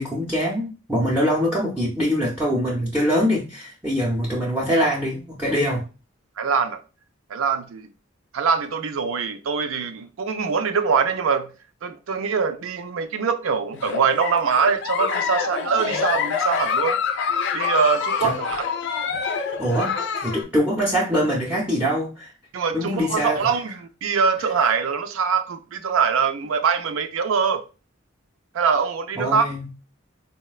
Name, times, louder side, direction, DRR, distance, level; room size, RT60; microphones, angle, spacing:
voice 1, 0.0-5.8 17.6-17.7 18.2-18.3 19.4-22.3 22.7-23.5 29.1-29.7, equal, 5° right, 0.6 m, -23 dB
voice 2, 6.4-6.8 7.3-7.9 8.3-11.5 11.8-17.0 17.5-18.7 22.5-27.6 28.5-29.5, right 6 dB, 75° right, 0.4 m, -23 dB
Giggle, 13.7-20.4, left 6 dB, 60° left, 0.4 m, -26 dB
3.9 x 2.1 x 2.3 m
head